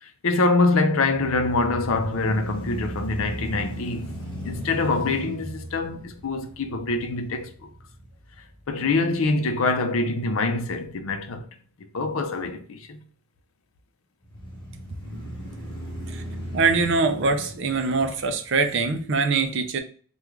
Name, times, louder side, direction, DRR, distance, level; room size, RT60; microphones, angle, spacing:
voice 1, 0.0-7.7 8.7-11.4 11.9-13.0, left 3 dB, 70° left, 0.5 m, -25 dB
sound 1, 1.0-9.1 9.6-9.7 14.2-18.7, equal, 20° left, 1.1 m, -36 dB
voice 2, 16.5-19.8, right 4 dB, 55° right, 0.5 m, -23 dB
3.5 x 2.3 x 3.0 m
head